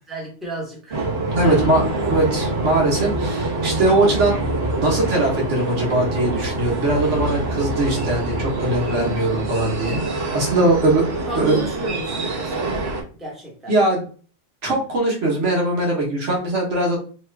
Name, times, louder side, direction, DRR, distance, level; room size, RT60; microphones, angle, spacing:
voice 1, 0.1-1.0 1.4-1.9 11.2-12.8 13.1-13.7, right 1 dB, ahead, -3 dB, 0.9 m, -34 dB
sound 1, 0.9-13.0, right 2 dB, 55° right, 1.2 m, -25 dB
voice 2, 1.3-4.5 4.8-11.0 11.3-11.6 13.7-14.0 14.6-17.0, right 2 dB, 90° right, -2 dB, 1.4 m, -21 dB
3.0 x 2.3 x 3.1 m, 0.40 s
omnidirectional pair, 1.2 m